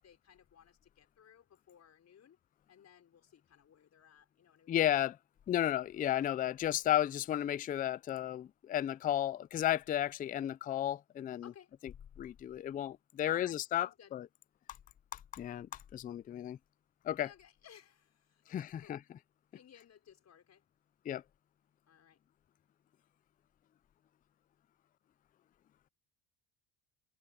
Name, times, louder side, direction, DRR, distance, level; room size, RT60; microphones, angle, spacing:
voice 1, 0.0-2.4 2.7-4.8 11.4-11.8 13.3-14.2 17.2-19.0 19.5-20.6 21.9-22.2, left 8 dB, 40° left, 5.5 m, -59 dB
voice 2, 4.7-5.2 5.5-11.4 12.2-14.3 15.1-16.6 17.0-17.3 18.5-19.0 21.1-21.2, left 12 dB, 20° left, 0.3 m, -33 dB
cardioid pair, 110°, 41 cm